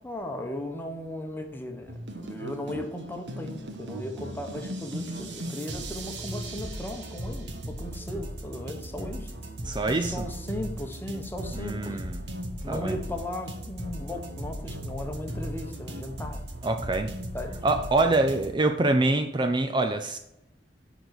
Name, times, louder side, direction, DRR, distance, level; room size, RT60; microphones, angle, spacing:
voice 1, 0.0-9.3 10.0-12.0 12.6-16.4 17.3-17.6, left 1 dB, 10° left, 4 dB, 1.2 m, -36 dB
sound 1, 1.9-18.5, right 1 dB, 90° right, 1.3 m, -37 dB
voice 2, 9.6-10.3 11.5-12.2 12.7-12.9 16.6-17.1 17.6-20.2, right 2 dB, 25° right, 7 dB, 0.5 m, -25 dB
10.5 x 4.0 x 6.6 m, 0.89 s
head